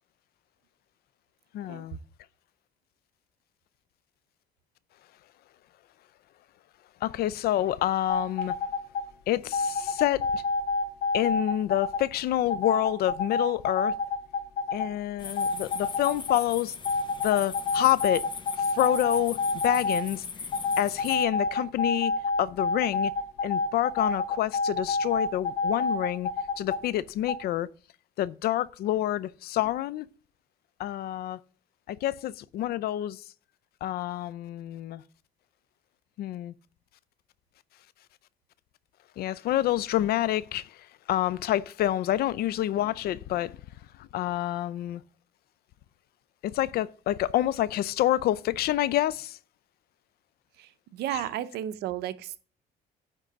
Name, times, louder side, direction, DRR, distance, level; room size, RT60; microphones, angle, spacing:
voice 1, 1.5-2.0 7.0-8.5 9.3-10.4 11.1-13.9 14.7-16.7 17.2-18.2 18.7-20.2 20.8-22.1 22.4-23.1 23.4-26.3 26.6-27.7 28.2-30.1 30.8-31.4 31.9-33.2 33.8-35.0 36.2-36.5 39.2-43.6 44.0-45.0 46.4-49.4 51.1-51.2, left 13 dB, 65° left, 0.5 m, -27 dB
sound 1, 8.1-9.0 9.5-12.0 12.5-14.9 15.2-16.4 16.9-20.0 20.5-26.8 27.3-27.4, left 3 dB, 80° left, 2.1 m, -28 dB
sound 2, 15.2-21.2, left 5 dB, 30° left, 0.8 m, -39 dB
voice 2, 50.6-52.4, right 12 dB, 75° right, 0.7 m, -33 dB
9.9 x 3.7 x 6.7 m
cardioid pair, 110°, 17 cm